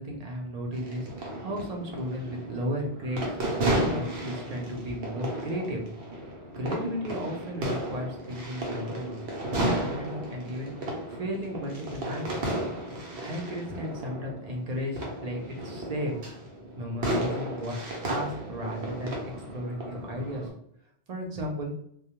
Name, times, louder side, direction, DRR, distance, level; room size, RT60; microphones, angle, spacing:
voice 1, 0.0-5.8 6.6-9.2 9.5-10.7 11.1-12.3 13.2-16.1 16.8-17.8 18.0-19.1 19.5-20.5 21.1-21.7, equal, 45° right, 0 dB, 0.6 m, -34 dB
sound 1, 0.7-20.5, right 1 dB, 80° right, 0.9 m, -34 dB
2.3 x 2.0 x 2.8 m, 0.69 s
omnidirectional pair, 1.1 m